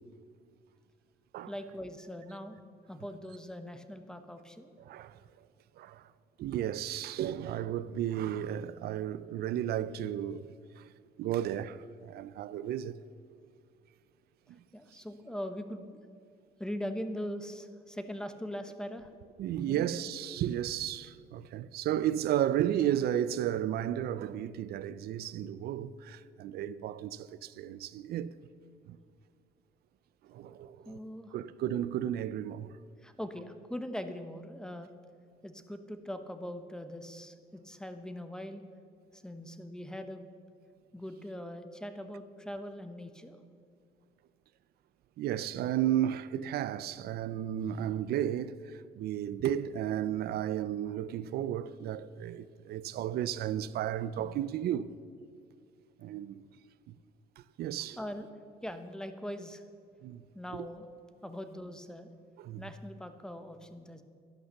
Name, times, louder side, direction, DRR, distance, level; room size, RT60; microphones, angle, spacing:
voice 1, 1.5-2.6 2.9-4.7 14.7-16.0 16.6-19.1 19.6-19.9 30.8-31.4 33.0-34.9 35.4-38.6 39.1-40.3 40.9-43.4 58.0-58.3 58.6-59.6 60.3-60.8 61.2-62.1 62.6-64.0, equal, 5° left, 1.0 m, -41 dB
voice 2, 4.8-5.2 5.8-6.1 6.4-10.5 10.8-10.9 11.2-13.0 14.5-14.6 19.4-28.3 28.9-29.0 30.3-31.0 31.3-32.7 45.2-54.9 56.0-56.4 56.9-57.0 57.4-58.0 60.0-60.2 60.5-60.7 62.4-62.7, right 11 dB, 65° right, 0.6 m, -33 dB
11.5 x 11.5 x 6.6 m
cardioid pair, 110°, 17 cm